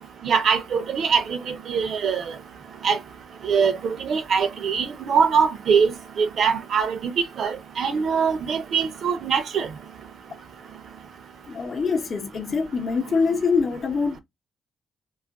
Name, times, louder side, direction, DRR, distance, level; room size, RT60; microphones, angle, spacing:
voice 1, 0.2-2.2 2.8-3.0 3.4-9.7, right 6 dB, 65° right, 0.5 m, -23 dB
voice 2, 11.5-14.2, left 5 dB, 45° left, 0.7 m, -24 dB
2.4 x 2.1 x 3.4 m
cardioid pair, 105°, 0 cm